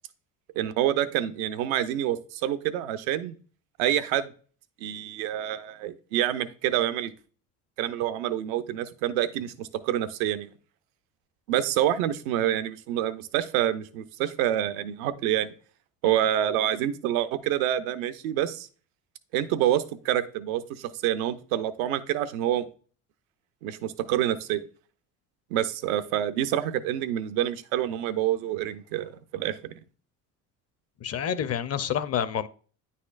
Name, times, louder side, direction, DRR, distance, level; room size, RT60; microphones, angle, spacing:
voice 1, 0.6-3.4 3.8-4.3 4.8-7.1 7.8-10.5 11.5-15.5 16.0-18.7 19.3-22.7 23.6-24.6 25.5-29.7, right 11 dB, 80° right, 0.6 m, -27 dB
voice 2, 31.0-32.5, left 8 dB, 40° left, 0.6 m, -28 dB
9.5 x 4.2 x 2.4 m
hypercardioid pair, 65°, 41 cm